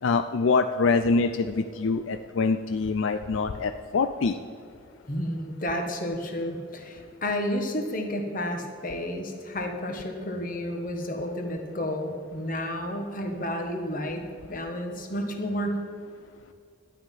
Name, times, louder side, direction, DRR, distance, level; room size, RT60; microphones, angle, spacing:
voice 1, 0.0-4.4, left 4 dB, 80° left, 9 dB, 0.4 m, -25 dB
voice 2, 5.1-15.8, left 1 dB, 40° left, 4 dB, 1.4 m, -31 dB
12.0 x 9.4 x 5.4 m, 2.3 s
head